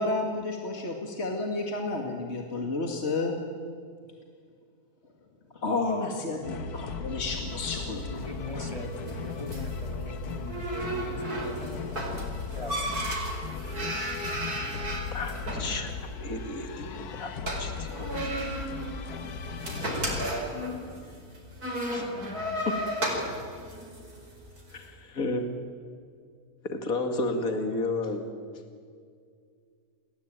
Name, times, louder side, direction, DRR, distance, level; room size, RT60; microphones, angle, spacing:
voice 1, 0.0-3.4 5.6-8.2 8.5-8.6, left 3 dB, 45° left, 2 dB, 2.6 m, -31 dB
sound 1, 6.4-20.3, left 4 dB, 90° left, 1.7 m, -37 dB
sound 2, 7.5-24.7, right 1 dB, 80° right, 5.5 m, -35 dB
voice 2, 8.1-11.8 12.6-13.1, equal, 20° left, 3 dB, 2.7 m, -41 dB
voice 3, 15.1-18.4 21.9-22.1 24.7-25.4 26.7-28.3, left 2 dB, 65° left, 5 dB, 2.7 m, -32 dB
29.5 x 21.0 x 9.0 m, 2.1 s
omnidirectional pair, 1.6 m